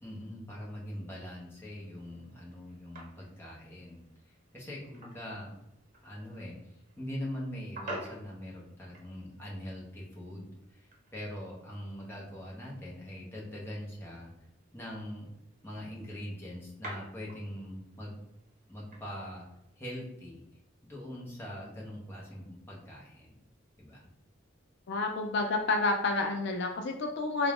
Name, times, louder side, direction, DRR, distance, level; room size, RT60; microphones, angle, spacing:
voice 1, 0.0-5.5 6.0-14.3 14.7-15.3 15.6-18.2 18.7-19.4 19.8-20.4 20.8-23.4 23.8-24.1, equal, 10° left, -5 dB, 0.9 m, -42 dB
sound 1, 1.3-20.0, right 1 dB, 40° right, 1.0 m, -51 dB
voice 2, 24.9-27.5, left 3 dB, 60° left, 4 dB, 0.4 m, -29 dB
3.8 x 2.4 x 3.5 m, 0.84 s
head